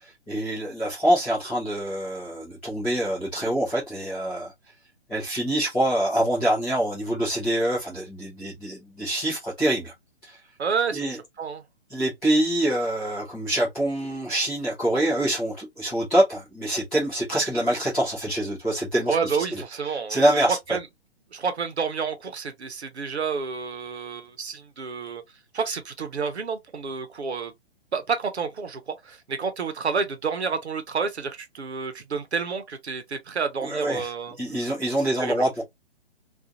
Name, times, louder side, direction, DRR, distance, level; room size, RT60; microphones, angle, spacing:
voice 1, 0.3-4.5 5.1-9.9 10.2-10.4 10.9-11.2 11.9-19.6 19.9-20.6 33.6-34.1 34.4-35.6, right 1 dB, 5° left, 0.3 m, -25 dB
voice 2, 10.6-11.1 11.4-11.6 19.1-20.9 21.3-25.2 25.5-27.5 27.9-34.4 35.2-35.5, right 5 dB, 85° right, 0.8 m, -29 dB
2.4 x 2.4 x 2.7 m
figure-of-eight pair, 135°, 32 cm